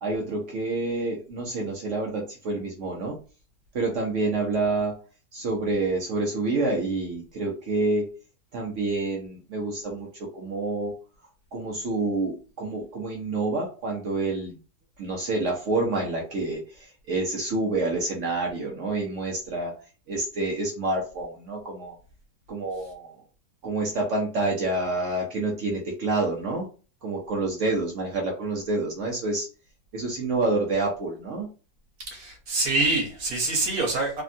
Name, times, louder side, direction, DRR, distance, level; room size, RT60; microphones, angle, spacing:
voice 1, 0.0-3.2 3.7-4.9 5.3-8.1 8.5-10.1 10.3-10.9 11.5-14.5 15.0-19.7 20.1-22.0 22.5-23.2 23.6-26.7 27.0-29.5 29.9-31.5, right 2 dB, 75° right, 0.6 m, -28 dB
voice 2, 32.0-34.2, right 2 dB, 55° right, 1.4 m, -26 dB
3.3 x 2.1 x 2.5 m
omnidirectional pair, 2.0 m